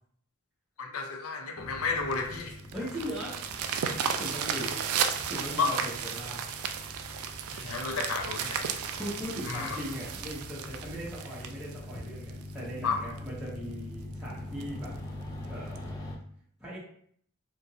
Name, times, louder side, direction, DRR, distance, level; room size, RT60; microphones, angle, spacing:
voice 1, 0.8-2.6 5.6-5.8 7.5-8.7 9.5-9.7 12.8-13.0, left 4 dB, 70° left, 4 dB, 0.5 m, -31 dB
sound 1, 1.6-16.2, left 1 dB, 15° left, 0.4 m, -44 dB
sound 2, 2.1-12.6 13.2-13.3 13.7-13.8 14.1-14.2 14.6-14.9 15.8-15.9, right 7 dB, 75° right, 0.3 m, -34 dB
voice 2, 2.7-3.6 4.1-4.8 5.2-6.4 9.0-14.9 15.4-16.0 16.6-16.8, equal, 5° right, -9 dB, 0.9 m, -39 dB
2.9 x 2.5 x 2.7 m, 0.64 s
head